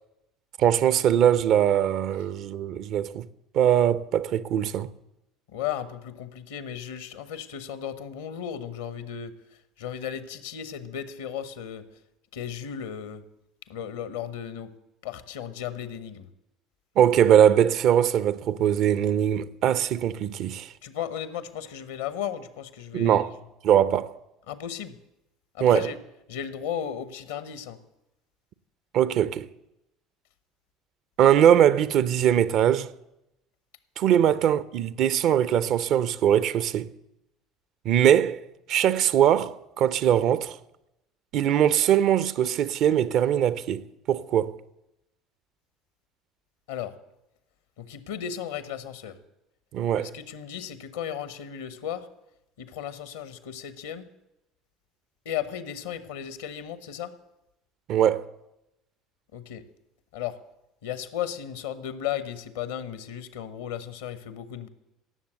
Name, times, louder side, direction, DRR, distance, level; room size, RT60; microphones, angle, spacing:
voice 1, 0.6-3.2 3.5-4.9 17.0-20.7 22.9-23.3 23.6-24.1 25.6-25.9 28.9-29.5 31.2-32.9 34.0-36.9 37.8-38.4 38.7-40.6 41.3-44.6 49.7-50.1 57.9-58.3, right 10 dB, 50° right, 0.6 m, -21 dB
voice 2, 5.5-11.8 12.3-13.2 13.7-14.7 15.0-16.3 20.8-23.3 24.5-25.0 25.5-26.0 26.3-27.8 34.2-34.3 46.7-46.9 47.8-49.2 50.0-52.1 52.6-54.1 55.2-57.1 59.3-59.6 60.1-60.4 60.8-64.7, left 9 dB, 65° left, 0.9 m, -35 dB
17.5 x 7.3 x 7.9 m
figure-of-eight pair, 60°, 0 cm